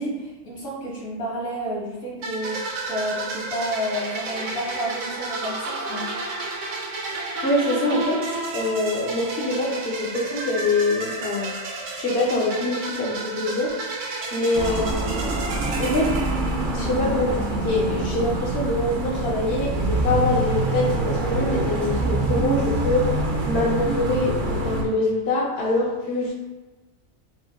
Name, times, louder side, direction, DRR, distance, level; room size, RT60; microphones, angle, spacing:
voice 1, 0.0-2.6 2.9-6.1, equal, 75° left, -6 dB, 2.0 m, -30 dB
sound 1, 2.2-17.0, right 3 dB, 70° right, 0.9 m, -32 dB
voice 2, 7.1-8.2 8.5-11.5 12.0-13.8 14.3-15.5 15.8-16.1 16.7-23.1 23.5-26.3, left 2 dB, 55° left, -5 dB, 0.9 m, -24 dB
sound 2, 14.5-24.8, right 2 dB, 55° right, 0.6 m, -25 dB
7.2 x 2.5 x 2.2 m, 1.2 s
omnidirectional pair, 1.4 m